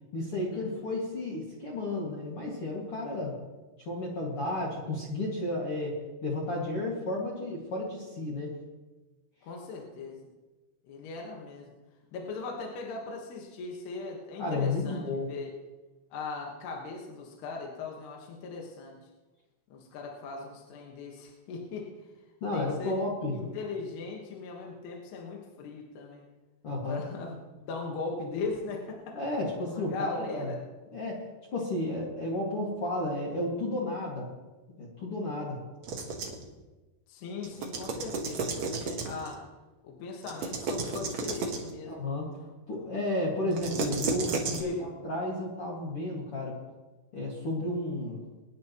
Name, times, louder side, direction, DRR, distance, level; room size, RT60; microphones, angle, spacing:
voice 1, 0.1-3.4 3.9-8.5 14.4-15.3 22.4-23.3 26.6-27.0 29.1-30.5 30.9-34.3 34.8-35.6 41.8-42.3 42.7-46.6 47.1-48.2, left 2 dB, 45° left, -4 dB, 1.9 m, -32 dB
voice 2, 9.4-10.2 10.9-11.7 12.1-15.0 15.3-15.5 16.1-19.0 19.7-21.9 22.5-23.0 23.3-26.3 26.9-29.2 29.7-30.6 37.1-39.4 39.8-42.0 44.6-44.9, left 4 dB, 65° left, -1 dB, 3.3 m, -39 dB
sound 1, 35.8-36.5 37.4-39.3 40.2-41.7 43.5-44.6, right 4 dB, 85° right, 1.5 m, -33 dB
24.0 x 10.5 x 3.0 m, 1.2 s
omnidirectional pair, 5.4 m